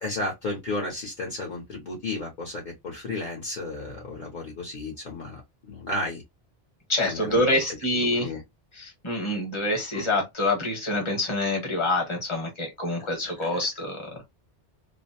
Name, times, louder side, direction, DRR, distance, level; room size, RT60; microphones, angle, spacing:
voice 1, 0.0-5.4 5.7-6.2 7.0-7.6 7.9-8.4 9.9-10.0 13.4-13.5, left 2 dB, 50° left, 0.9 m, -33 dB
voice 2, 6.9-8.3 8.8-14.0, left 1 dB, 30° left, 1.1 m, -26 dB
2.5 x 2.0 x 2.7 m
omnidirectional pair, 1.1 m